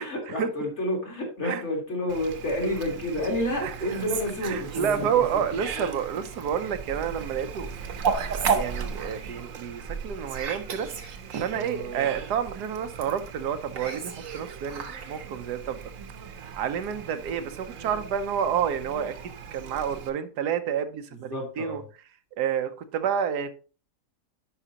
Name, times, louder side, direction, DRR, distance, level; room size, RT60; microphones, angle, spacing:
voice 1, 0.0-5.4 5.7-6.0 21.1-21.8, left 1 dB, 45° left, 1 dB, 2.2 m, -30 dB
Fowl, 2.1-20.1, right 6 dB, 60° right, 1.2 m, -35 dB
voice 2, 4.4-7.7 8.1-15.8 16.5-21.8 22.4-23.5, right 8 dB, 80° right, 9 dB, 1.3 m, -29 dB
10.0 x 4.9 x 2.8 m, 0.37 s
omnidirectional pair, 1.7 m